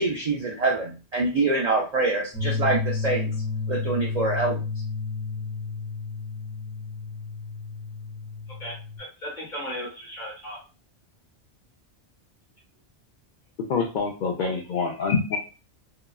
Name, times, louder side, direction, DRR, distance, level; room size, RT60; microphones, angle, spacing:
voice 1, 0.0-3.3 3.7-4.6, right 3 dB, 55° right, -1 dB, 0.4 m, -25 dB
sound 1, 2.3-9.0, left 4 dB, 5° right, 0.6 m, -31 dB
voice 2, 8.6-10.6 14.4-14.5, equal, 40° left, -3 dB, 1.3 m, -36 dB
voice 3, 13.7-15.4, left 5 dB, 60° left, 0 dB, 0.5 m, -26 dB
2.8 x 2.2 x 2.3 m, 0.33 s
omnidirectional pair, 1.2 m